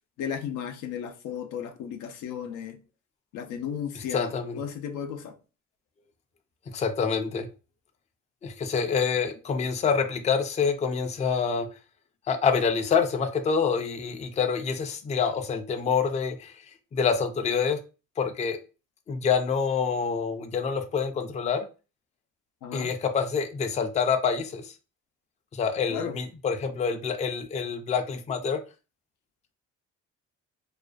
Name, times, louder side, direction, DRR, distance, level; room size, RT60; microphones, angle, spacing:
voice 1, 0.2-2.8 3.3-5.4 22.6-22.9 25.9-26.2, left 8 dB, 85° left, 0.5 m, -34 dB
voice 2, 4.0-4.6 6.7-7.5 8.4-11.7 12.3-16.6 16.9-17.8 18.2-18.6 19.1-21.7 22.7-24.7 25.5-28.6, left 6 dB, 25° left, 0.3 m, -27 dB
2.4 x 2.2 x 2.3 m
cardioid pair, 90°, 30 cm